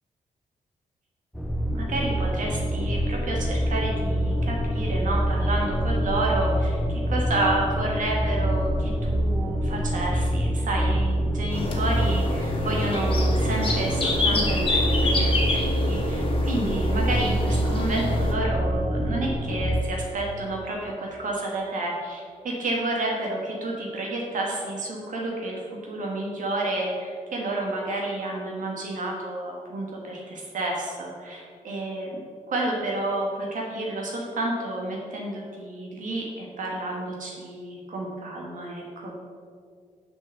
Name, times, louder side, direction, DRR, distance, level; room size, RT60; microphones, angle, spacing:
sound 1, 1.3-19.8, equal, ahead, 0.6 m, -25 dB
voice 1, 1.7-32.1 32.5-39.1, right 2 dB, 70° right, -2 dB, 1.6 m, -30 dB
sound 2, 11.5-18.3, left 2 dB, 40° left, 1.7 m, -28 dB
7.1 x 5.5 x 6.4 m, 2.1 s
cardioid pair, 95°, 14 cm